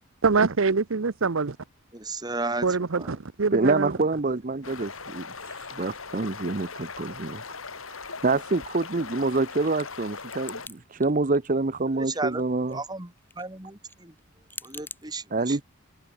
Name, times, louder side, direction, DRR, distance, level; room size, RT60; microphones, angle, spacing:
voice 1, 0.2-1.6 2.6-3.9, right 4 dB, 70° right, 0.8 m, -24 dB
voice 2, 1.9-2.7 2.9-3.1 11.9-14.1 14.6-15.6, right 3 dB, 20° right, 1.8 m, -34 dB
voice 3, 3.5-7.4 8.2-12.8 15.3-15.6, right 3 dB, 40° right, 0.7 m, -26 dB
sound 1, 4.6-10.7, left 4 dB, 75° left, 4.6 m, -40 dB
sound 2, 9.3-10.8 11.0-11.7 12.0-15.0, left 3 dB, 10° left, 5.8 m, -44 dB
head